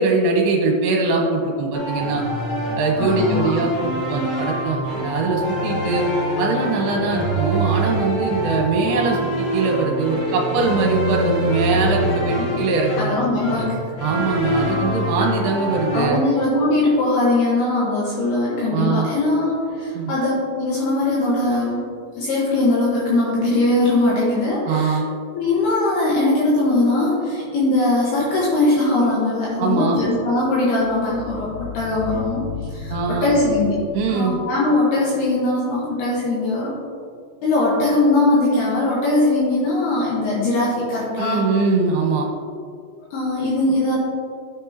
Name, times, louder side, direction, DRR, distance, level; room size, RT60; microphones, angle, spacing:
voice 1, 0.0-2.2 2.8-6.1 6.4-13.1 14.0-16.2 18.7-19.1 19.9-20.1 24.6-25.1 29.6-30.0 32.9-33.3 33.9-34.4 41.2-42.3, right 3 dB, 70° right, 0 dB, 3.0 m, -22 dB
sound 1, 1.7-16.1, equal, 50° left, 3.4 m, -25 dB
voice 2, 3.0-3.6 12.4-12.6 13.0-13.7 15.9-21.9 22.2-25.0 25.3-32.4 32.7-33.8 34.1-36.8 37.4-41.4 43.1-44.0, left 2 dB, 70° left, -6 dB, 3.1 m, -20 dB
sound 2, 27.0-27.3 30.8-35.3 35.7-35.8, left 8 dB, 85° left, 2.4 m, -35 dB
14.0 x 6.3 x 2.9 m, 2.2 s
omnidirectional pair, 5.2 m